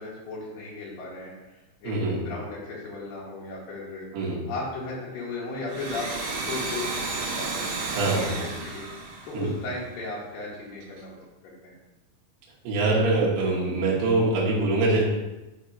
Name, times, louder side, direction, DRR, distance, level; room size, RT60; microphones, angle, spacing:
voice 1, 0.0-1.6 1.8-4.1 4.5-6.1 6.4-7.7 8.4-8.9 9.3-11.1 11.4-11.8, left 3 dB, 75° left, -5 dB, 2.8 m, -36 dB
voice 2, 1.8-2.2 4.1-4.4 7.9-8.4 9.3-9.5 12.6-15.0, right 2 dB, 80° right, -4 dB, 2.9 m, -24 dB
Domestic sounds home sounds, 5.6-10.1, right 3 dB, 60° right, 2.0 m, -32 dB
6.6 x 2.9 x 5.1 m, 1.1 s
omnidirectional pair, 4.0 m